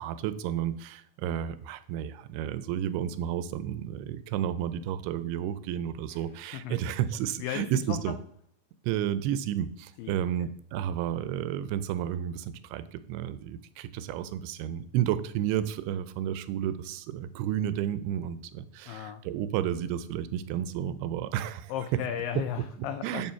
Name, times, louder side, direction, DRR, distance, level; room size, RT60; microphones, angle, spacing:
voice 1, 0.0-8.1 8.8-22.0 23.0-23.3, right 10 dB, 85° right, 13 dB, 2.5 m, -32 dB
voice 2, 7.4-8.1 10.0-10.2 18.9-19.2 21.7-23.3, left 10 dB, 90° left, 8 dB, 2.0 m, -35 dB
7.3 x 5.5 x 5.7 m, 0.63 s
omnidirectional pair, 4.7 m